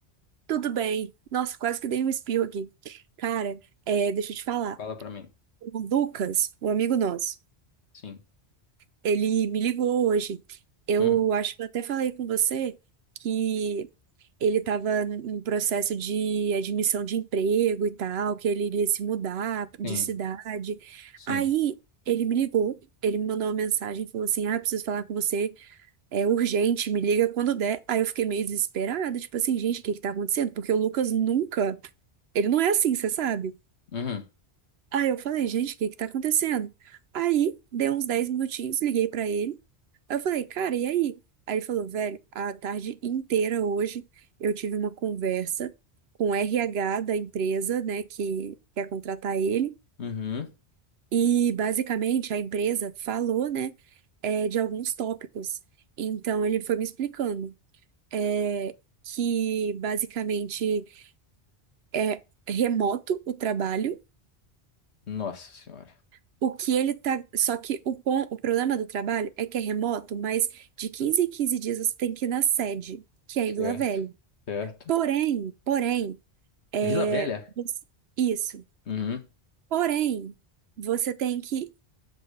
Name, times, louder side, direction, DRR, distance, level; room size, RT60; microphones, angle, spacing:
voice 1, 0.5-3.6 3.9-4.8 5.6-7.4 9.0-10.6 10.9-12.8 13.2-13.9 14.4-21.7 22.1-25.8 26.1-31.8 32.3-33.6 34.9-39.6 40.1-41.2 41.5-44.0 44.4-45.7 46.2-49.8 51.1-53.7 54.2-55.6 56.0-57.5 58.1-58.7 59.1-61.0 61.9-62.2 62.5-64.0 66.4-73.0 73.3-74.1 74.9-76.2 76.7-77.3 77.6-77.7 78.2-78.6 79.7-80.3 80.8-81.8, right 8 dB, 70° right, 0.9 m, -27 dB
voice 2, 4.8-5.3 8.0-8.2 11.0-11.2 19.8-20.1 21.2-21.5 33.9-34.3 50.0-50.5 65.1-65.9 73.6-73.8 74.5-74.9 76.8-77.5 78.9-79.2, left 6 dB, 80° left, 1.6 m, -33 dB
7.7 x 4.0 x 6.5 m
omnidirectional pair, 1.1 m